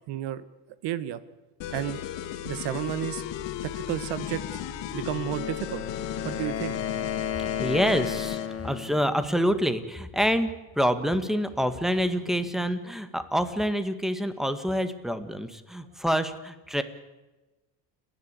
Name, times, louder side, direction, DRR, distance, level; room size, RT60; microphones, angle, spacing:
voice 1, 0.1-0.4 0.8-1.2 1.7-2.0 2.4-3.2 3.6-4.4 4.9-5.9 6.2-6.8, right 12 dB, 65° right, 16 dB, 1.6 m, -31 dB
sound 1, 1.6-8.5, left 11 dB, 65° left, 2.1 m, -35 dB
Wind instrument woodwind instrument, 5.2-9.0, left 8 dB, 30° left, 1.4 m, -33 dB
voice 2, 7.3-16.8, equal, ahead, 11 dB, 1.8 m, -27 dB
30.0 x 11.0 x 8.5 m, 1.1 s
supercardioid pair, 100°, 46 cm